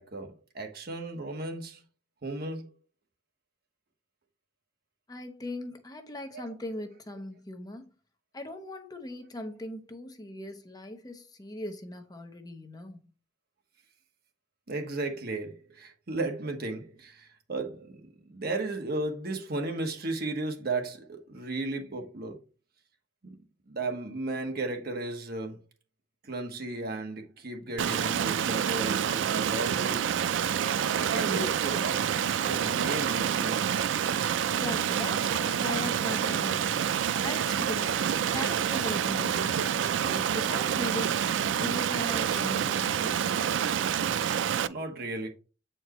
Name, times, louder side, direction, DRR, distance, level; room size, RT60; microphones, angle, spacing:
voice 1, 0.0-1.8 2.2-2.7 6.3-6.5 14.7-22.4 23.2-23.3 23.7-25.6 26.2-30.0 30.9-32.1 32.4-33.7 44.4-45.3, right 2 dB, 60° right, 1.2 m, -35 dB
voice 2, 5.1-7.9 8.3-13.0 34.6-36.9 37.2-38.1 38.3-43.3, left 1 dB, 20° left, 0.8 m, -39 dB
Stream, 27.8-44.7, right 8 dB, 85° right, 0.4 m, -28 dB
7.8 x 4.5 x 3.0 m
head